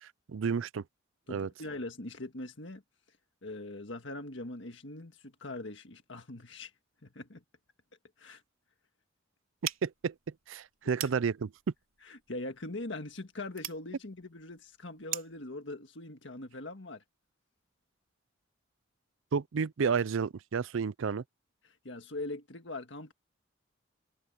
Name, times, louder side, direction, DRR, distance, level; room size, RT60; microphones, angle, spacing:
voice 1, 0.0-0.8 1.3-1.5 9.8-10.1 10.5-11.5 19.3-21.2, right 6 dB, 75° right, 0.4 m, -31 dB
voice 2, 1.3-2.8 3.4-6.7 7.0-7.4 8.2-8.4 11.0-11.1 12.0-17.0 21.6-23.1, left 2 dB, 65° left, 1.7 m, -42 dB
sound 1, 9.6-15.5, right 12 dB, 90° right, 3.1 m, -43 dB
head